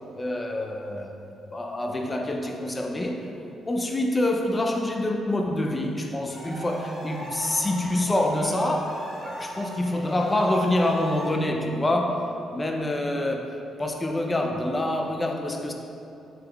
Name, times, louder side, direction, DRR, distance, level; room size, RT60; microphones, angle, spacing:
voice 1, 0.1-1.1 1.5-3.3 3.7-13.5 13.8-15.7, left 1 dB, 20° left, 2 dB, 0.3 m, -26 dB
sound 1, 6.3-11.3, right 1 dB, 65° right, 1.1 m, -38 dB
3.5 x 2.9 x 2.2 m, 2.8 s
cardioid pair, 90°, 0 cm